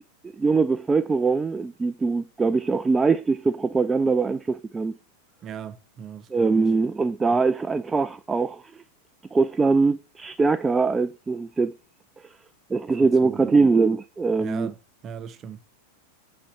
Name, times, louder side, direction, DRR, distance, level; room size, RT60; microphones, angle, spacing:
voice 1, 0.4-5.0 6.3-8.8 9.3-11.7 12.7-14.7, right 4 dB, 15° right, 0.5 m, -22 dB
voice 2, 5.4-6.7 7.3-7.4 12.9-13.5 14.4-14.8 15.0-15.6, right 8 dB, 30° right, 0.9 m, -38 dB
10.0 x 4.4 x 6.6 m
figure-of-eight pair, 90°, 0 cm